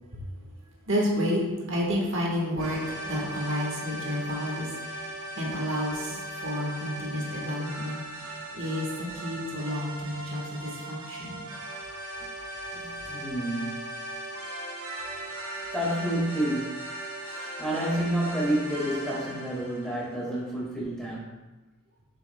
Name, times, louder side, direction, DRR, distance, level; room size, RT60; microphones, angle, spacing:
voice 1, 0.9-1.4 1.7-5.0 5.3-11.5, equal, 60° right, -2 dB, 1.4 m, -31 dB
sound 1, 2.6-20.4, right 1 dB, 85° right, 1.4 m, -38 dB
voice 2, 12.7-13.9 15.7-16.9 17.2-21.3, right 1 dB, 5° left, -6 dB, 1.8 m, -30 dB
7.3 x 6.9 x 2.2 m, 1.2 s
head